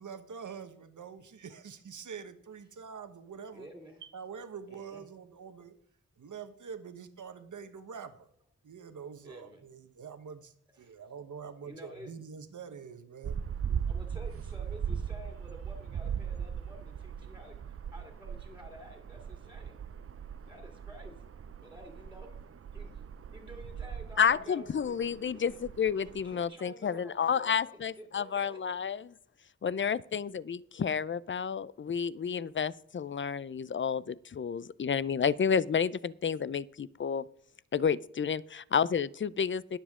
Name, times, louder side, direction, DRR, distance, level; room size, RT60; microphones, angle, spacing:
voice 1, 0.0-3.7 4.0-5.7 6.2-8.3 8.6-13.4, right 6 dB, 80° right, 9 dB, 1.2 m, -45 dB
voice 2, 3.5-4.0 4.7-5.0 9.2-9.6 10.8-10.9 11.6-12.1 13.7-19.8 20.5-21.3 21.6-22.3 22.7-23.0 23.3-25.4 26.0-27.5 28.0-28.6, equal, 5° right, 2 dB, 2.1 m, -51 dB
sound 1, 13.2-26.4, right 7 dB, 50° right, 0.5 m, -39 dB
voice 3, 24.2-29.1 29.6-37.3 37.7-39.8, left 7 dB, 40° left, 20 dB, 0.4 m, -30 dB
21.0 x 7.2 x 3.7 m, 0.66 s
wide cardioid pair, 130°, 30 cm